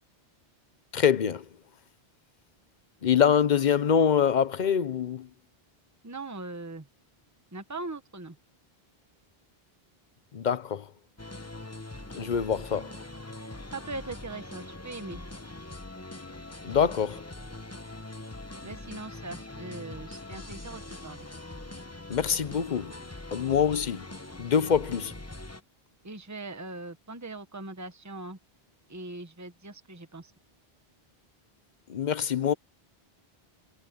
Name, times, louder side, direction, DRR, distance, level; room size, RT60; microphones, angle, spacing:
voice 1, 0.9-1.5 3.0-5.3 10.3-10.9 12.1-13.0 16.6-17.2 22.1-23.0 23.3-24.1 24.4-25.1 31.9-32.5, left 8 dB, 50° left, 0.8 m, -25 dB
voice 2, 6.0-6.9 7.5-8.4 13.7-15.2 18.6-21.3 26.0-28.4 28.9-30.3, right 2 dB, 15° right, 1.3 m, -40 dB
sound 1, 11.2-25.6, left 2 dB, 15° left, 1.1 m, -42 dB
omnidirectional pair, 1.0 m